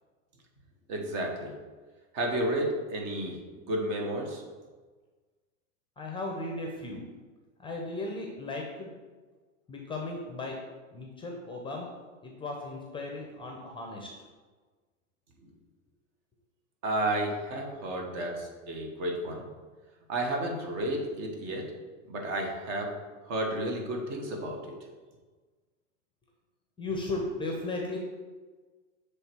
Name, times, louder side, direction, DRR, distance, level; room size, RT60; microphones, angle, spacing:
voice 1, 0.9-1.5 2.1-3.3 3.6-4.4 16.8-19.5 20.1-21.7 22.1-22.9 23.3-24.7, right 1 dB, 40° right, 1 dB, 1.4 m, -32 dB
voice 2, 6.0-7.0 7.6-8.9 9.7-10.6 10.9-11.9 12.2-14.1 26.8-28.0, left 2 dB, 15° left, 1 dB, 0.7 m, -36 dB
7.0 x 3.3 x 4.6 m, 1.4 s
hypercardioid pair, 125°, 39 cm